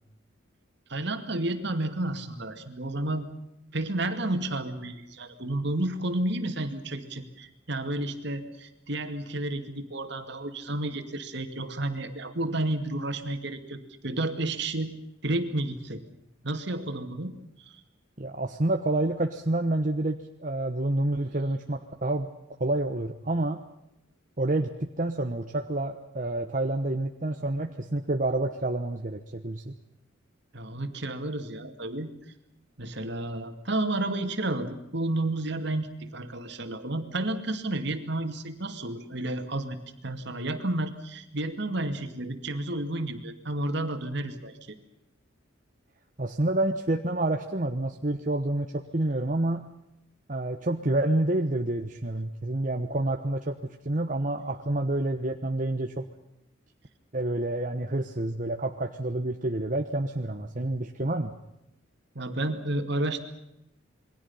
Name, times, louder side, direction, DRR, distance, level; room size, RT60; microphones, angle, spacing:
voice 1, 0.9-3.3 3.7-14.9 15.2-16.0 16.4-17.8 30.5-32.1 32.8-39.8 40.0-44.8 62.1-63.2, right 1 dB, 60° right, 7 dB, 2.4 m, -31 dB
voice 2, 18.2-22.3 22.6-23.6 24.4-29.7 46.2-49.7 50.3-56.1 57.1-61.3, right 2 dB, 40° right, 4 dB, 1.2 m, -28 dB
28.0 x 22.5 x 5.7 m, 0.86 s
head